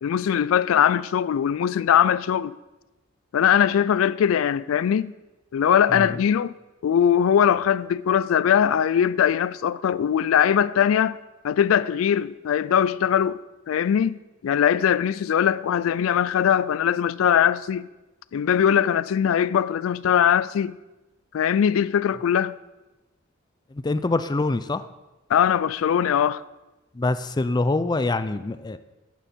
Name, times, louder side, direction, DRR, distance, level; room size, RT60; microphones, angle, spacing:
voice 1, 0.0-2.5 3.3-5.1 5.5-6.5 6.8-11.2 11.4-13.4 13.7-17.9 18.3-20.8 21.3-22.6 25.3-26.4, left 8 dB, 85° left, 0.3 m, -21 dB
voice 2, 23.7-24.8 26.9-28.8, left 2 dB, 20° left, 0.4 m, -25 dB
13.5 x 9.1 x 4.3 m
head